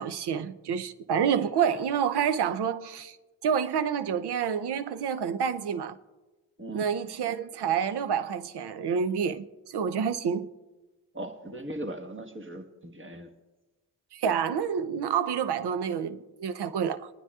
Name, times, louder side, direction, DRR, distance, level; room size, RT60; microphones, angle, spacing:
voice 1, 0.0-3.2 3.4-6.0 6.7-10.5 14.1-17.1, right 7 dB, 65° right, 0.7 m, -28 dB
voice 2, 6.6-6.9 11.1-13.3, right 1 dB, 25° right, 1.3 m, -38 dB
25.0 x 9.6 x 2.4 m
supercardioid pair, 45°, 43 cm